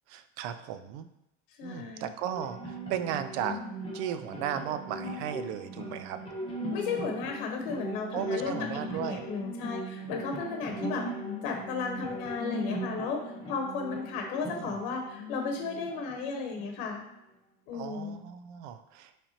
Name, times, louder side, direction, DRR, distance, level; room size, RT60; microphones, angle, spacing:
voice 1, 0.1-1.1 1.6-3.6 3.9-6.2 8.1-9.3 14.4-14.7 17.7-19.1, right 10 dB, 85° right, 10 dB, 0.5 m, -36 dB
voice 2, 1.6-2.0 6.7-8.6 8.9-11.1 11.4-13.2 13.5-17.1 17.7-18.3, left 5 dB, 75° left, 2 dB, 1.0 m, -34 dB
sound 1, 2.2-17.2, equal, 15° left, 1.0 m, -39 dB
5.7 x 3.4 x 2.8 m, 0.83 s
cardioid pair, 155°, 34 cm